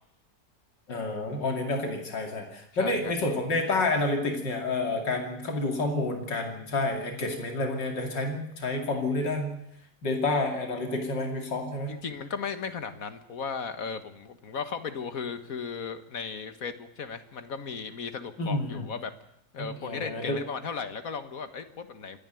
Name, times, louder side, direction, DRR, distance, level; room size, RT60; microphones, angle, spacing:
voice 1, 0.9-9.6 10.0-11.9 18.4-18.9 19.6-20.4, left 2 dB, 85° left, 3 dB, 3.2 m, -29 dB
voice 2, 2.8-3.1 11.9-19.1 19.5-22.2, left 5 dB, 55° left, 10 dB, 1.8 m, -36 dB
26.0 x 11.0 x 9.3 m, 0.79 s
omnidirectional pair, 1.9 m